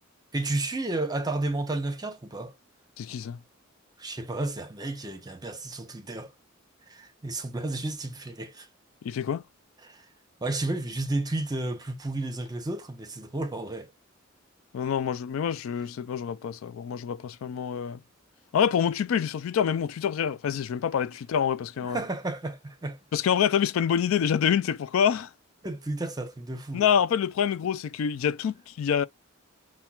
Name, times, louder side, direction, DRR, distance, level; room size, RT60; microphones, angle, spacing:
voice 1, 0.3-2.5 4.0-6.3 6.9-8.7 9.8-10.1 10.4-13.9 21.8-23.0 25.6-26.9, right 2 dB, 20° right, 0.6 m, -32 dB
voice 2, 3.0-3.4 9.0-9.4 14.7-18.0 18.5-22.0 23.1-25.3 26.7-29.0, left 8 dB, 75° left, 0.3 m, -26 dB
5.7 x 2.2 x 2.2 m
head